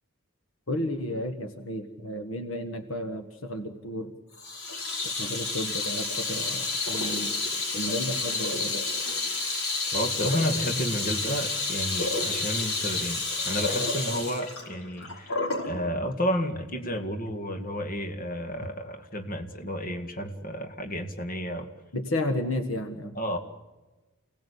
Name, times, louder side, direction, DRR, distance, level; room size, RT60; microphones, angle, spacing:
voice 1, 0.7-4.1 5.0-7.3 7.7-8.9 21.9-23.1, left 1 dB, 70° left, 7 dB, 1.6 m, -32 dB
Water tap faucet / Sink (filling or washing), 4.4-15.7, left 3 dB, 85° left, 5.5 m, -30 dB
voice 2, 9.9-21.7 23.2-23.4, equal, 40° left, 5 dB, 2.1 m, -31 dB
29.0 x 18.0 x 8.5 m, 1.2 s
head